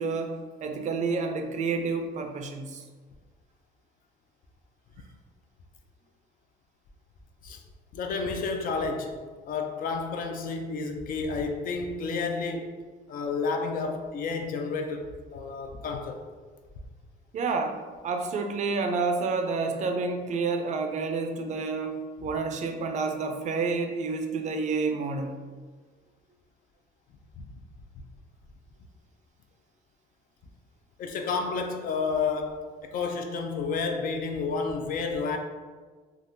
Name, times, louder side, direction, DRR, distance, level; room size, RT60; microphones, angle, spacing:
voice 1, 0.0-2.8 17.3-25.4, right 4 dB, 45° right, 0.4 m, -29 dB
voice 2, 7.9-9.1 9.5-12.7 13.1-15.0 15.3-16.2 27.4-27.5 31.0-35.4, left 4 dB, 55° left, 0.4 m, -30 dB
3.4 x 2.4 x 2.6 m
cardioid pair, 110°, 17 cm